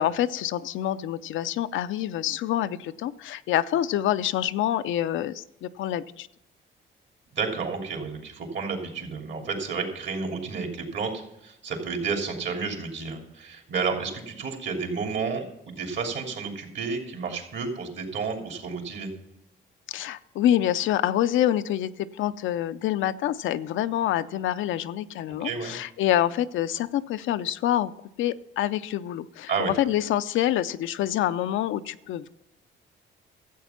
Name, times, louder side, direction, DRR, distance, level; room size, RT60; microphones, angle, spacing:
voice 1, 0.0-6.3 19.9-27.9 28.2-32.3, left 12 dB, 80° left, 12 dB, 0.6 m, -26 dB
voice 2, 7.3-19.1 25.4-25.8 29.5-29.7, right 5 dB, 65° right, 2 dB, 3.1 m, -31 dB
13.0 x 8.1 x 5.9 m, 0.87 s
cardioid pair, 90°, 20 cm